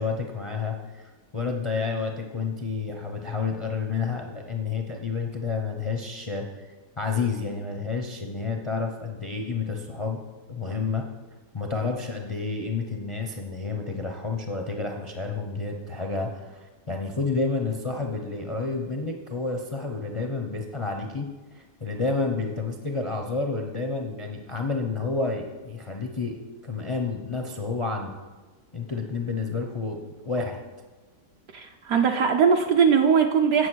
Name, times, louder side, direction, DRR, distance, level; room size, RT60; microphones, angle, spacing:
voice 1, 0.0-6.4 7.0-10.2 10.5-11.0 11.5-21.3 21.5-28.1 28.7-30.0 30.2-30.6, left 4 dB, 45° left, 2 dB, 0.4 m, -30 dB
voice 2, 31.5-33.7, right 6 dB, 65° right, 3 dB, 1.1 m, -20 dB
8.4 x 7.6 x 6.2 m, 1.3 s
omnidirectional pair, 1.8 m